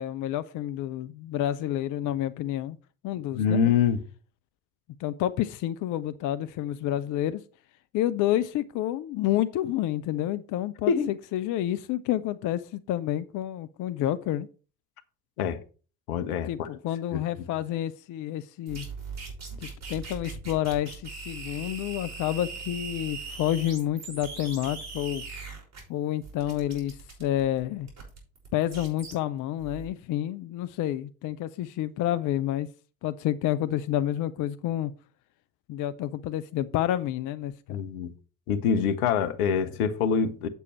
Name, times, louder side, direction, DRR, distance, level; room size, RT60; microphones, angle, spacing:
voice 1, 0.0-2.8 3.0-3.6 5.0-7.4 7.9-10.9 11.3-14.5 16.2-18.9 19.6-25.2 25.9-27.9 28.5-32.7 33.0-34.9 35.7-37.8, left 12 dB, 45° left, 0.6 m, -29 dB
voice 2, 3.3-4.0 10.9-11.1 15.4-15.6 16.1-16.7 17.1-17.2 37.7-38.1 38.5-40.5, left 7 dB, 70° left, 1.1 m, -25 dB
sound 1, 18.7-25.8 26.2-29.1 29.6-29.9, right 4 dB, 35° right, 5.6 m, -40 dB
8.3 x 6.9 x 4.4 m
hypercardioid pair, 65°, 46 cm